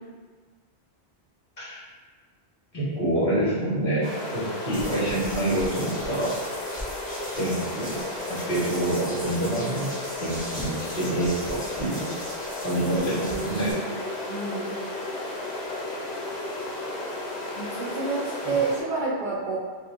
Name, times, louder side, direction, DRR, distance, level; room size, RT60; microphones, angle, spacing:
voice 1, 2.7-6.5 7.3-9.9 10.2-12.1 12.6-13.7 18.4-18.5, right 1 dB, 55° left, -10 dB, 1.6 m, -27 dB
sound 1, 4.0-18.8, left 2 dB, 85° left, 1.1 m, -34 dB
sound 2, 4.7-13.7, equal, 10° left, 0.9 m, -40 dB
voice 2, 12.8-13.9 14.3-14.7 17.5-19.6, right 3 dB, 50° right, -5 dB, 0.7 m, -29 dB
5.9 x 2.3 x 2.5 m, 1.5 s
omnidirectional pair, 1.1 m